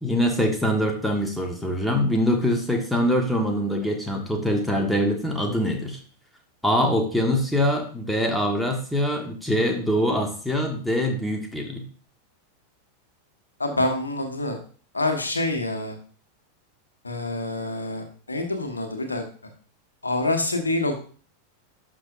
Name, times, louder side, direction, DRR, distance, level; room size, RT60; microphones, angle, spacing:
voice 1, 0.0-6.0 6.6-11.9, equal, ahead, 2 dB, 1.6 m, -24 dB
voice 2, 13.6-14.6 14.9-16.0 17.0-19.2 20.0-21.0, left 2 dB, 80° left, 4 dB, 1.3 m, -26 dB
11.5 x 6.0 x 2.6 m, 0.41 s
figure-of-eight pair, 90°, 0 cm